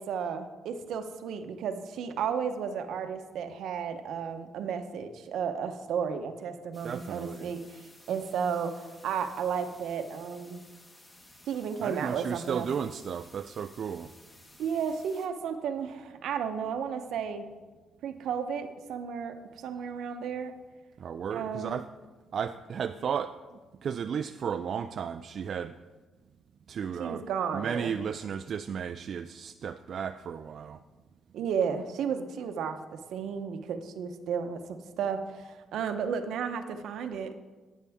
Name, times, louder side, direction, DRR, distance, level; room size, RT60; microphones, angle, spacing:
voice 1, 0.0-10.6 11.5-12.7 14.6-17.5 18.0-20.5 21.3-21.8 27.0-27.9 31.3-37.4, right 7 dB, 75° right, 8 dB, 0.8 m, -33 dB
sound 1, 6.7-15.3, left 1 dB, 20° left, 1.4 m, -56 dB
voice 2, 6.8-7.5 11.8-14.1 21.0-21.9 22.3-23.4 23.7-25.8 26.7-27.2 27.5-30.8, right 7 dB, 60° right, 9 dB, 0.3 m, -34 dB
11.5 x 8.4 x 3.5 m, 1.3 s
cardioid pair, 90°, 0 cm